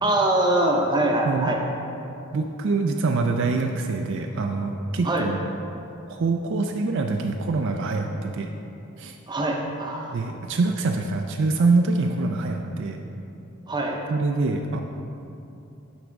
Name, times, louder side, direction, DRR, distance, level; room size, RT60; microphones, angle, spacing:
voice 1, 0.0-1.6 5.0-5.3 9.3-10.2 13.7-14.0, right 1 dB, 20° right, 0 dB, 0.6 m, -23 dB
voice 2, 2.3-5.5 6.1-8.5 9.0-9.2 10.1-13.0 14.1-14.8, right 3 dB, 55° right, 3 dB, 0.4 m, -25 dB
9.2 x 3.5 x 5.2 m, 2.7 s
head